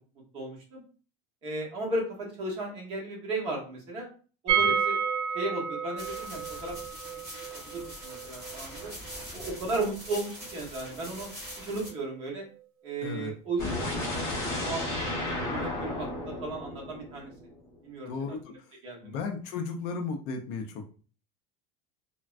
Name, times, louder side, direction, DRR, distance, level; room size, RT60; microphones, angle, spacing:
voice 1, 0.3-0.8 1.4-4.1 4.4-5.0 5.3-6.7 7.0-8.9 9.3-11.3 11.6-12.5 12.8-14.2 14.5-15.1 15.5-17.3 17.8-18.1 18.5-18.6 18.8-19.2, right 2 dB, 30° right, -2 dB, 0.9 m, -35 dB
sound 1, 4.5-10.3 10.5-10.6 10.9-11.0, right 7 dB, 70° right, 0.4 m, -31 dB
sound 2, 6.0-11.9, equal, 15° right, 1.3 m, -43 dB
voice 2, 13.0-13.3 18.1-18.7 19.0-20.8, left 4 dB, 50° left, 4 dB, 0.4 m, -35 dB
sound 3, 13.6-17.6, left 1 dB, 15° left, 1.0 m, -33 dB
3.3 x 2.1 x 2.4 m, 0.38 s
cardioid pair, 175°, 18 cm